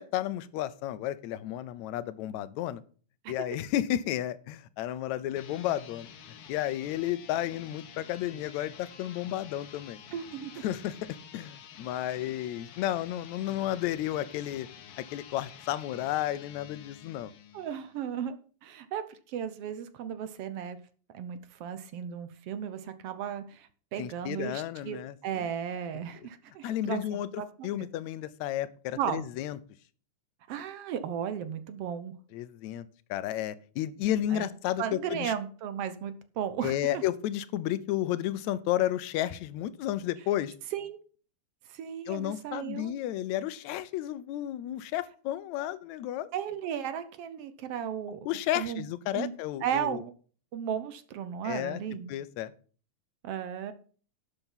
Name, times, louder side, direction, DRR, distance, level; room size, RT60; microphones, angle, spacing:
voice 1, 0.0-2.8 3.3-6.1 6.5-10.0 10.6-11.0 11.3-14.7 15.0-17.3 24.0-25.5 26.6-29.6 32.3-32.9 33.1-35.3 36.6-40.5 42.1-46.3 48.3-50.0 51.4-51.8 52.1-52.5, left 13 dB, 80° left, 16 dB, 1.9 m, -32 dB
sound 1, 5.3-18.0, left 8 dB, 60° left, 1.7 m, -50 dB
voice 2, 10.1-10.6 17.5-20.8 21.1-25.0 25.2-27.7 29.0-29.2 30.5-32.1 34.3-34.5 34.8-37.0 40.7-41.0 41.7-42.9 46.3-48.2 48.6-48.9 49.1-49.3 49.6-50.1 50.5-52.1 53.2-53.7, right 9 dB, 70° right, 11 dB, 1.5 m, -35 dB
12.0 x 6.8 x 5.6 m, 0.42 s
omnidirectional pair, 3.4 m